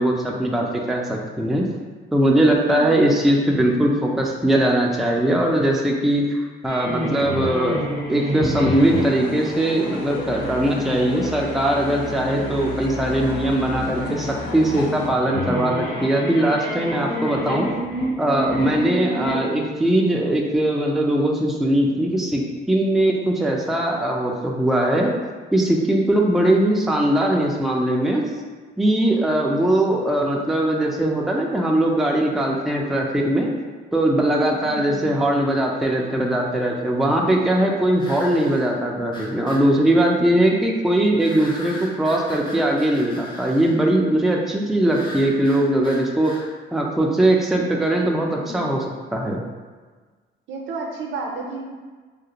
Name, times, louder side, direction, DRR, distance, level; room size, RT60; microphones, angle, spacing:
voice 1, 0.0-1.6 2.1-7.8 8.1-17.7 18.2-25.1 25.5-28.2 28.8-33.5 33.9-46.5 46.7-49.4, right 1 dB, ahead, -1 dB, 0.4 m, -20 dB
voice 2, 2.7-3.2 16.6-17.2 19.1-19.4 29.4-29.9 34.6-35.3 48.4-48.8 50.5-51.6, right 2 dB, 75° right, 1 dB, 0.6 m, -33 dB
sound 1, 6.7-9.6 10.2-19.3, left 1 dB, 55° left, 1.3 m, -29 dB
sound 2, 8.8-15.1, left 4 dB, 85° left, 0.4 m, -33 dB
sound 3, 34.3-34.4 38.0-38.7 39.1-39.7 41.2-43.7 44.9-46.5, left 1 dB, 25° left, 0.7 m, -38 dB
3.2 x 2.5 x 2.8 m, 1.4 s
cardioid pair, 90°, 20 cm